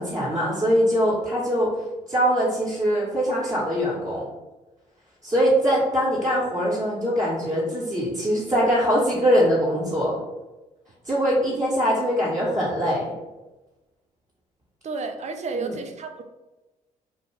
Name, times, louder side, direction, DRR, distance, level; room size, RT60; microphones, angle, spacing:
voice 1, 0.0-1.7 2.1-4.3 5.2-10.2 11.1-13.1 15.5-15.7, equal, 15° right, -9 dB, 1.0 m, -22 dB
voice 2, 14.8-16.2, right 4 dB, 40° right, 5 dB, 0.5 m, -31 dB
2.5 x 2.2 x 3.2 m, 1.1 s
hypercardioid pair, 45°, 18 cm